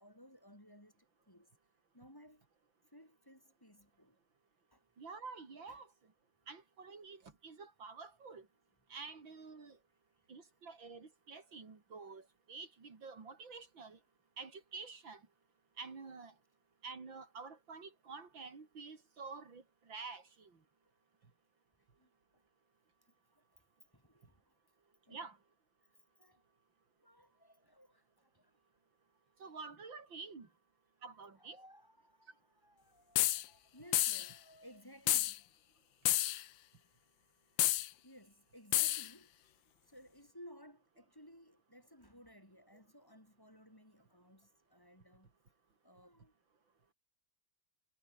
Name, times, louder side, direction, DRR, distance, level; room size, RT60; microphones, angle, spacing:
voice 1, 0.0-1.5 1.9-2.4 2.9-4.2 4.7-4.8 5.7-5.8 20.8-20.9 22.0-22.4 23.3-23.6 23.9-24.6 25.1-25.2 26.2-26.5 27.0-28.6 31.4-35.5 38.0-39.3 39.8-45.3 45.8-46.3, equal, 10° left, 5.6 m, -59 dB
voice 2, 5.0-5.9 6.5-8.5 8.9-9.8 10.3-14.0 14.4-15.2 15.8-16.3 16.8-20.5 25.1-25.4 29.4-30.5 31.0-31.6, right 4 dB, 80° right, 4.1 m, -49 dB
sound 1, 33.2-33.4 33.9-34.3 35.1-35.4 36.1-36.4 37.6-37.9 38.7-39.1, left 14 dB, 80° left, 1.4 m, -30 dB
omnidirectional pair, 2.0 m